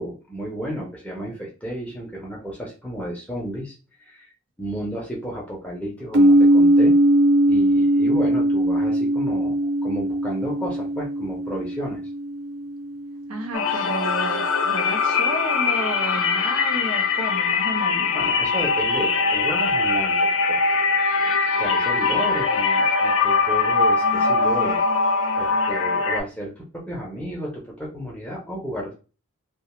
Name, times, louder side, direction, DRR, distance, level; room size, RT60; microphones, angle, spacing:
voice 1, 0.0-3.7 4.0-4.3 4.6-6.9 7.5-9.6 9.8-12.0 18.1-20.6 21.6-24.8 25.4-28.9, equal, 5° left, -3 dB, 0.6 m, -32 dB
sound 1, 6.1-13.9, right 1 dB, 55° right, 0.4 m, -20 dB
voice 2, 13.3-18.1, right 2 dB, 75° right, 2 dB, 0.8 m, -31 dB
sound 2, 13.5-26.2, left 4 dB, 60° left, 0.4 m, -21 dB
2.4 x 2.3 x 2.9 m, 0.33 s
head